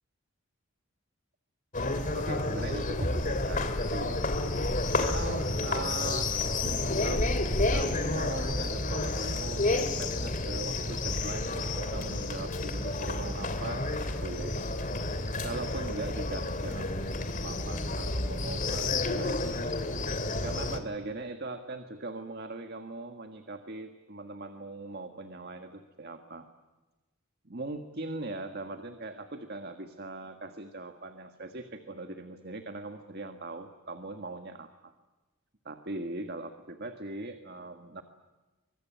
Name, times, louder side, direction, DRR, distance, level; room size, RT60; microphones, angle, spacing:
sound 1, 1.7-20.8, left 2 dB, 35° left, 2.5 m, -30 dB
voice 1, 2.1-4.2 4.9-6.3 7.0-7.3 7.7-13.8 14.2-14.6 15.4-16.9 17.4-19.4 20.4-26.5 27.4-34.9 35.6-38.0, right 2 dB, 45° right, 7 dB, 1.6 m, -40 dB
25.0 x 24.0 x 9.2 m, 1.1 s
head